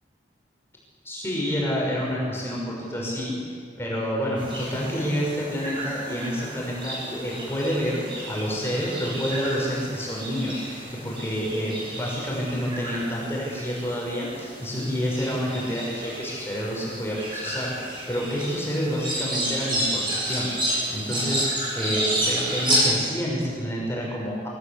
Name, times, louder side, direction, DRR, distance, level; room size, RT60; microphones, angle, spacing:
voice 1, 1.0-3.3 3.8-21.5 21.8-24.5, equal, 15° left, -4 dB, 5.6 m, -28 dB
sound 1, 4.4-22.8, right 1 dB, 25° right, 7.9 m, -31 dB
24.0 x 18.5 x 8.3 m, 2.1 s
head